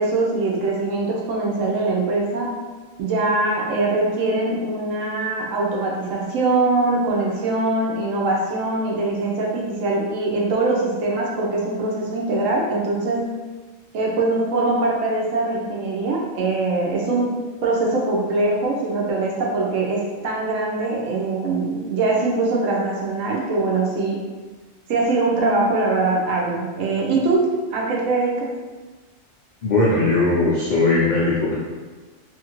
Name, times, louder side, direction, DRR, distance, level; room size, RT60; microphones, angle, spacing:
voice 1, 0.0-2.5 3.0-13.3 13.9-17.3 17.6-24.2 24.9-27.5 27.7-28.5, right 2 dB, 75° right, -2 dB, 1.0 m, -22 dB
voice 2, 29.6-31.5, left 2 dB, 75° left, -6 dB, 0.4 m, -19 dB
2.7 x 2.5 x 2.9 m, 1.3 s
omnidirectional pair, 1.4 m